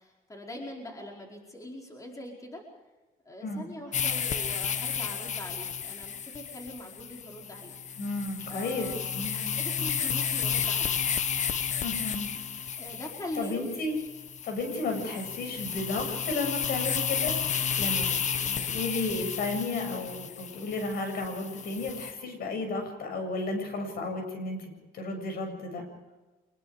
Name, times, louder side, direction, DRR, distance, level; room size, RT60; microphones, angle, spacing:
voice 1, 0.0-2.6 3.2-7.7 8.5-10.9 12.8-13.8, left 1 dB, 20° left, 0 dB, 4.8 m, -42 dB
sound 1, 3.9-22.1, left 7 dB, 45° left, 1.4 m, -32 dB
voice 2, 8.0-9.5 11.8-12.3 13.4-13.9 14.4-17.4 17.8-25.8, left 2 dB, 65° left, 6 dB, 7.4 m, -33 dB
26.0 x 22.5 x 5.1 m, 1.2 s
cardioid pair, 110°, 17 cm